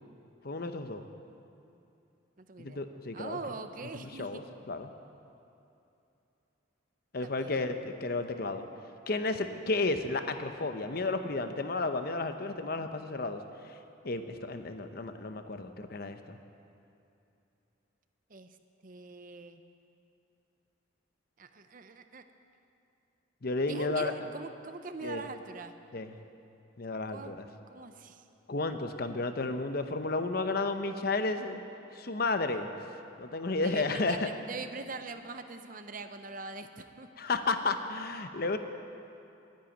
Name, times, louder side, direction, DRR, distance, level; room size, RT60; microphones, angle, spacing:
voice 1, 0.4-1.0 2.6-3.4 4.0-4.4 4.7-4.9 7.1-8.7 9.1-13.7 14.0-16.4 23.4-24.1 25.0-25.2 25.9-26.2 26.8-27.5 28.5-31.6 31.9-32.7 33.2-34.3 37.2-38.6, left 3 dB, 50° left, 8 dB, 0.7 m, -32 dB
voice 2, 2.4-2.8 3.1-4.4 7.2-7.6 18.3-18.5 18.8-19.6 21.4-22.2 23.7-25.7 27.1-27.3 27.7-28.3 33.6-37.1, right 3 dB, 45° right, 8 dB, 0.7 m, -42 dB
11.5 x 10.0 x 9.1 m, 2.8 s
head